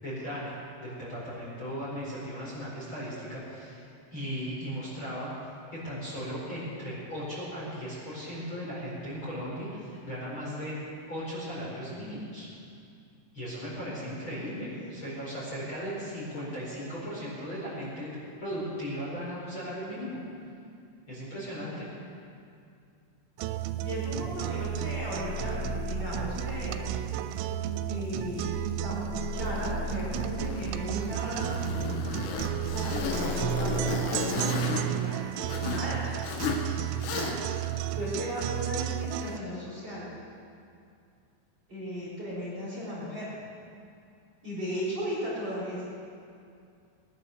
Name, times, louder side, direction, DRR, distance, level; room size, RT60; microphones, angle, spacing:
voice 1, 0.0-3.8 4.1-5.3 5.7-10.8 11.1-12.5 13.3-18.1 18.4-20.2 21.1-21.9, equal, 25° left, -8 dB, 5.0 m, -37 dB
sound 1, 23.4-39.4, right 13 dB, 85° right, 2.9 m, -33 dB
voice 2, 23.8-26.9 27.9-28.6 28.8-31.7 32.7-36.0 37.0-37.4 37.9-40.1 41.7-43.3 44.4-45.8, equal, 25° right, -8 dB, 4.9 m, -36 dB
sound 2, 24.0-33.9, left 8 dB, 90° left, 3.5 m, -40 dB
Zipper (clothing), 29.4-35.9 36.2-36.7 37.0-37.6, left 4 dB, 75° left, 3.4 m, -34 dB
19.5 x 11.0 x 6.5 m, 2.4 s
omnidirectional pair, 5.3 m